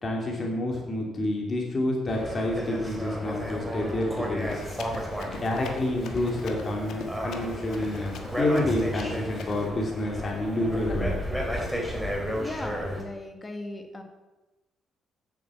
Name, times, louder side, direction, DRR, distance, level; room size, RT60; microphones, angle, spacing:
voice 1, 0.0-4.6 5.3-11.1, left 1 dB, 35° left, 0 dB, 2.9 m, -28 dB
sound 1, 2.1-13.0, equal, ahead, 3.1 m, -33 dB
Run, 4.4-9.7, left 5 dB, 75° left, 1.4 m, -42 dB
voice 2, 12.4-14.0, left 2 dB, 20° left, 5 dB, 1.8 m, -37 dB
8.4 x 8.2 x 7.2 m, 1.1 s
cardioid pair, 90°, 0 cm